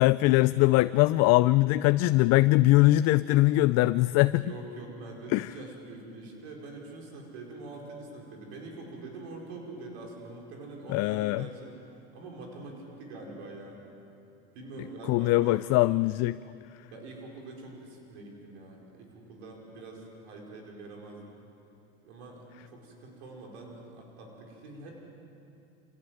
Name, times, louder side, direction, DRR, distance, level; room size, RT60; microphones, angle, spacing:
voice 1, 0.0-4.4 5.3-5.5 10.9-11.5 15.1-16.4, left 18 dB, 55° left, 15 dB, 0.5 m, -22 dB
voice 2, 4.4-11.7 12.1-13.8 14.5-16.0 16.9-21.3 22.0-24.9, right 2 dB, 85° right, -1 dB, 5.2 m, -44 dB
26.0 x 18.0 x 7.8 m, 2.7 s
supercardioid pair, 100°, 32 cm